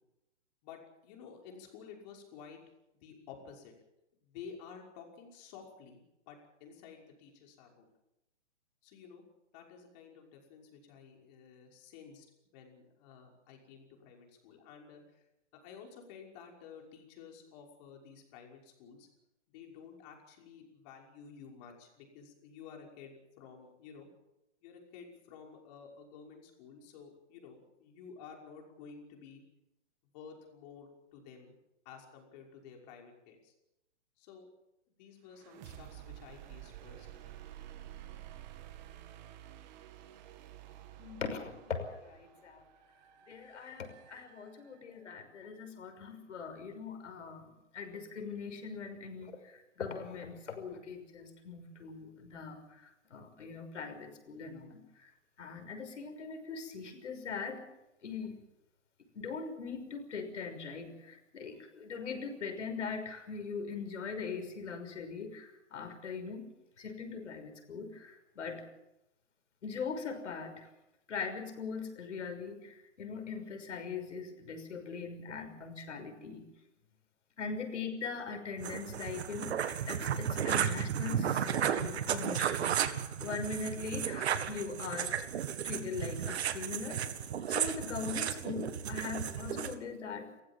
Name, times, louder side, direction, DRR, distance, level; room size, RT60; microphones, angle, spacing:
voice 1, 0.6-2.6 2.9-3.7 4.2-6.0 6.3-7.9 8.8-9.2 9.5-12.3 12.5-15.3 15.6-19.1 19.5-24.1 24.6-29.4 30.1-31.6 31.8-33.5 34.2-34.5 34.9-37.3, left 6 dB, 35° left, 1 dB, 5.8 m, -52 dB
sound 1, 35.3-45.1, right 12 dB, 35° right, 2.2 m, -51 dB
voice 2, 41.0-42.6 43.3-47.4 47.7-55.1 55.4-57.6 58.0-58.4 59.2-66.5 66.8-68.6 69.6-70.7 71.1-76.5 77.4-85.2 85.6-87.0 87.5-90.4, left 5 dB, 75° left, 6 dB, 6.0 m, -41 dB
sound 2, 78.6-89.7, right 9 dB, 60° right, 1.9 m, -34 dB
29.0 x 15.5 x 7.4 m, 0.89 s
hypercardioid pair, 145°, 36 cm